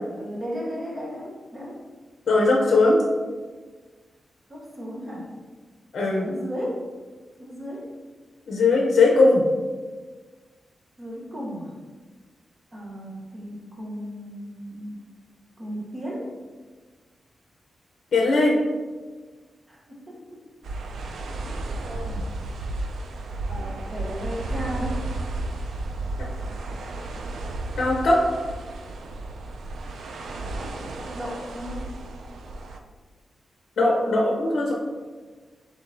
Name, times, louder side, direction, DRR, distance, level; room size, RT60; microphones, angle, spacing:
voice 1, 0.1-1.8 4.5-5.3 6.1-6.8 7.4-7.9 11.0-11.8 12.7-15.0 15.6-16.3 19.7-20.4 21.4-21.5 21.9-22.3 23.5-25.0 30.6-31.8, equal, 25° right, -3 dB, 0.8 m, -35 dB
voice 2, 2.3-3.0 5.9-6.3 8.5-9.4 18.1-18.6 27.8-28.2 33.8-34.7, left 2 dB, 65° left, -1 dB, 0.7 m, -19 dB
sound 1, 20.6-32.8, right 2 dB, 85° right, 0.4 m, -33 dB
5.0 x 3.9 x 2.6 m, 1.4 s
wide cardioid pair, 140°, 0 cm